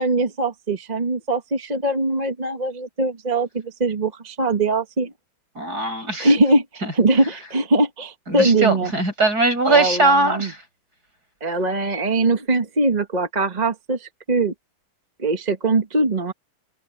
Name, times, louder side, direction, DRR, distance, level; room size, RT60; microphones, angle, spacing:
voice 1, 0.0-5.1 6.2-6.6 6.9-8.9 9.7-10.5 11.4-14.5 15.2-16.3, right 2 dB, 25° right, 1.3 m, -21 dB
voice 2, 5.6-6.3 6.8-6.9 8.3-10.6, right 2 dB, 45° right, 7.7 m, -20 dB
open air
omnidirectional pair, 2.3 m